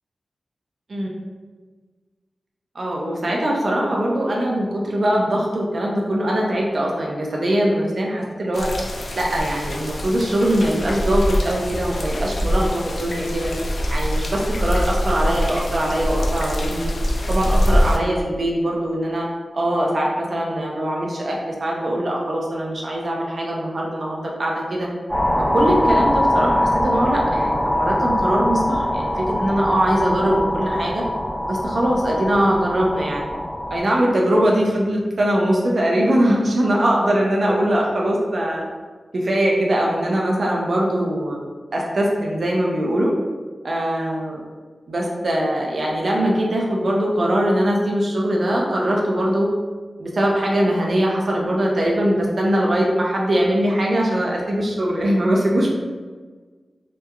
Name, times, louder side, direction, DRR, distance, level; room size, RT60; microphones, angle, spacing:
voice 1, 2.7-8.7 9.1-13.5 13.9-16.9 17.3-19.3 19.5-24.9 25.5-31.0 31.5-33.3 33.7-38.6 39.1-41.5 41.7-43.1 43.6-44.4 44.9-49.5 50.0-55.7, right 1 dB, 65° right, -2 dB, 0.4 m, -21 dB
sound 1, 8.5-18.0, equal, 65° left, 0.3 m, -23 dB
sound 2, 25.1-33.8, left 1 dB, 5° left, 0.8 m, -22 dB
2.8 x 2.3 x 2.2 m, 1.4 s
cardioid pair, 55°, 0 cm